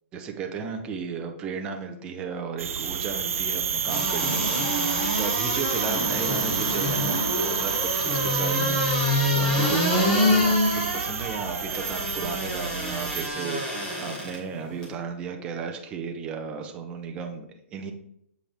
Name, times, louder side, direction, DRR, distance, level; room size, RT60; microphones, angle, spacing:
voice 1, 0.1-17.9, right 5 dB, 15° right, 4 dB, 0.6 m, -34 dB
sound 1, 2.6-13.3, right 7 dB, 85° right, 0.4 m, -29 dB
sound 2, 3.8-14.4 14.8-14.9, left 1 dB, 10° left, 1.5 m, -26 dB
7.2 x 5.0 x 3.4 m, 0.74 s
hypercardioid pair, 165°, 7 cm